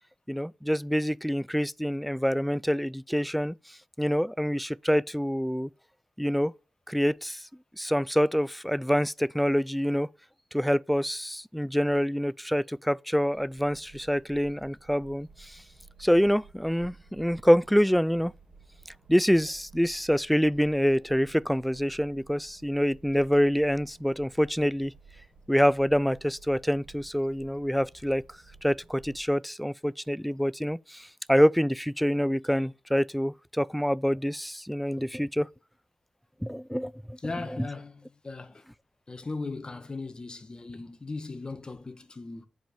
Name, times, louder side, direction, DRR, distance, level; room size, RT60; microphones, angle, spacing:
voice 1, 0.3-3.5 4.0-5.7 6.2-6.5 6.9-7.5 7.8-10.1 10.5-15.6 16.0-18.3 19.1-24.9 25.5-28.2 28.6-35.5 36.4-37.2 37.6-37.7, equal, ahead, 0.3 m, -26 dB
sound 1, 13.3-29.2, right 4 dB, 55° right, 2.2 m, -54 dB
voice 2, 37.2-38.6 39.1-42.5, left 3 dB, 40° left, 1.4 m, -38 dB
8.8 x 5.3 x 6.9 m
cardioid pair, 45°, 2 cm